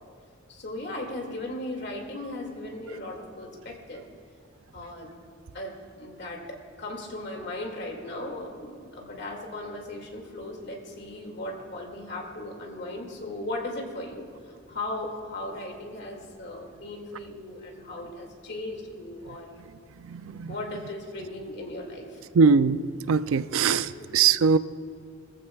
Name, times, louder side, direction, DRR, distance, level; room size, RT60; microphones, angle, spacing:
voice 1, 0.5-4.0 4.7-5.1 5.5-14.3 14.7-19.5 20.5-22.2 23.9-24.2, left 1 dB, 60° left, 0 dB, 2.2 m, -37 dB
voice 2, 20.1-20.5 22.3-22.8 23.1-24.6, right 5 dB, 90° right, 14 dB, 0.4 m, -21 dB
21.0 x 14.5 x 2.3 m, 2.1 s
head